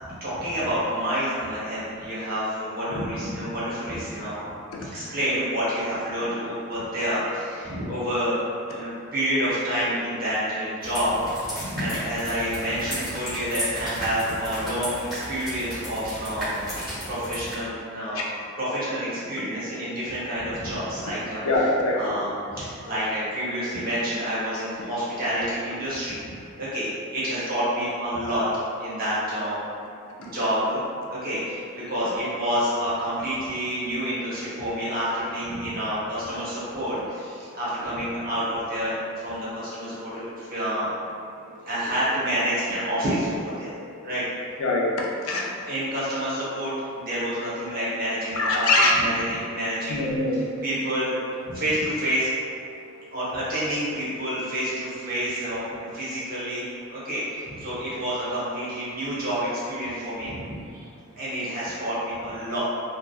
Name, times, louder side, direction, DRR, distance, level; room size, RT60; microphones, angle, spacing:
voice 1, 0.0-4.5 4.8-8.3 8.7-16.6 17.0-18.2 18.6-21.4 21.9-26.2 26.6-28.5 28.8-29.6 30.2-30.8 31.1-40.9 41.7-43.7 44.0-44.2 45.6-48.7 48.9-50.0 50.6-51.1 51.4-52.3 53.1-60.9 61.1-62.6, equal, 45° right, -10 dB, 0.8 m, -28 dB
sound 1, 10.8-17.5, equal, ahead, 1.0 m, -34 dB
voice 2, 21.4-22.2 41.4-41.7 43.9-44.1 44.6-45.6 48.3-48.9 49.9-50.6 51.5-51.6 52.7-52.8, left 2 dB, 75° left, -2 dB, 0.4 m, -24 dB
2.7 x 2.2 x 2.3 m, 2.3 s
head